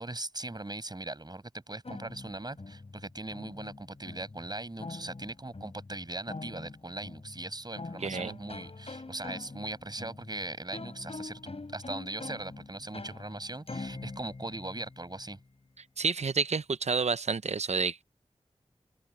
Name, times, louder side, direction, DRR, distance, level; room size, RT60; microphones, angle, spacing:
voice 1, 0.0-15.4, right 2 dB, 35° right, 6.4 m, -40 dB
sound 1, 1.8-15.4, left 3 dB, 60° left, 7.5 m, -44 dB
voice 2, 8.0-8.4 16.0-18.0, right 5 dB, 75° right, 0.7 m, -29 dB
open air
wide cardioid pair, 60°, 12 cm